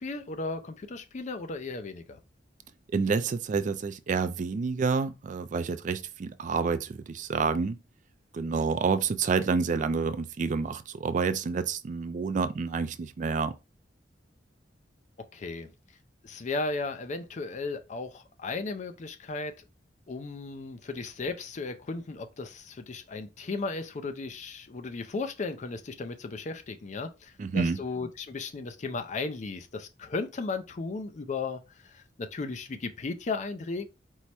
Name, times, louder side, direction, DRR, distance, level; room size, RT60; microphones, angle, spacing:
voice 1, 0.0-2.2 15.2-15.7 16.2-19.5 20.1-33.9, left 3 dB, 40° left, 0.4 m, -35 dB
voice 2, 2.9-7.8 8.3-13.6 27.4-27.8, right 5 dB, 45° right, 0.3 m, -28 dB
4.6 x 2.1 x 4.2 m
head